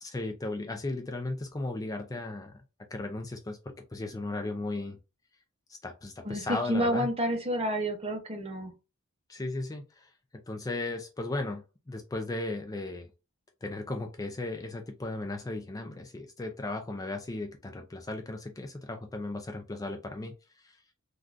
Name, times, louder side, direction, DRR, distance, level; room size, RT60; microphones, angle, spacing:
voice 1, 0.0-2.5 2.9-3.6 3.9-5.0 5.8-7.1 9.3-10.1 10.5-13.1 13.6-20.8, left 2 dB, 15° left, 4 dB, 0.4 m, -36 dB
voice 2, 6.2-8.7, equal, 30° right, 4 dB, 0.7 m, -29 dB
3.6 x 2.3 x 2.4 m, 0.29 s
head